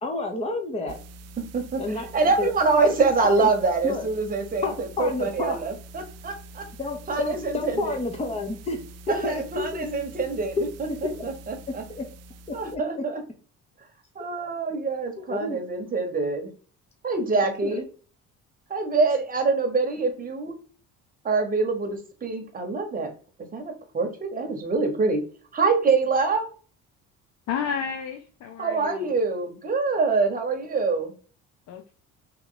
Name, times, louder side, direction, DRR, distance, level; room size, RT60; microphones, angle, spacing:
voice 1, 0.0-1.0 1.8-2.1 2.4-2.5 2.8-3.0 3.4-3.5 3.8-4.1 4.6-5.6 6.8-8.8 9.2-9.9 10.6-10.7 11.0-11.3 11.9-12.0 12.7-13.0 15.2-15.6 17.6-17.8, left 3 dB, 20° left, 3 dB, 0.9 m, -30 dB
sound 1, 0.9-12.8, right 2 dB, 55° right, 0.4 m, -45 dB
voice 2, 2.1-6.6 7.1-8.0 9.1-10.9 11.2-11.8 12.5-13.2 14.1-16.5 17.0-17.8 18.7-20.5 21.2-23.1 23.5-25.2 25.5-26.4 28.6-31.1, right 4 dB, 30° right, 4 dB, 1.1 m, -25 dB
voice 3, 27.5-29.1 31.7-31.9, left 7 dB, 60° left, 5 dB, 0.6 m, -31 dB
3.1 x 3.1 x 3.9 m, 0.40 s
cardioid pair, 115°, 31 cm